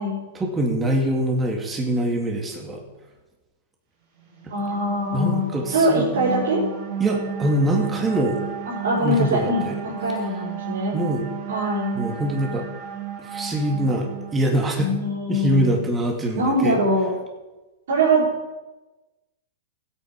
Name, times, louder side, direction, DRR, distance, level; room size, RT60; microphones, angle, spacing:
voice 1, 0.3-2.8 5.1-6.1 7.0-8.4 9.0-9.8 10.9-11.3 11.9-12.7 13.2-14.9 15.3-16.8, right 1 dB, 15° right, 1 dB, 2.4 m, -23 dB
sound 1, 4.3-14.9, right 7 dB, 55° right, 3.9 m, -33 dB
voice 2, 4.5-6.6 8.6-11.0 11.5-11.9 14.8-15.8 16.3-17.1 17.9-18.3, right 1 dB, 75° right, -8 dB, 5.0 m, -23 dB
16.0 x 8.3 x 5.3 m, 1.1 s
hypercardioid pair, 125°, 0 cm